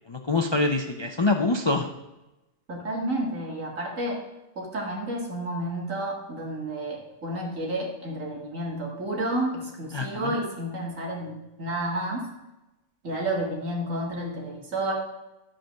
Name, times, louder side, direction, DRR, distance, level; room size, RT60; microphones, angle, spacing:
voice 1, 0.1-1.9 9.9-10.3, left 3 dB, 40° left, 4 dB, 0.4 m, -25 dB
voice 2, 2.7-4.2 4.6-12.3 13.0-14.9, right 1 dB, 70° right, -1 dB, 2.4 m, -31 dB
12.0 x 5.0 x 6.3 m, 1.0 s
omnidirectional pair, 1.4 m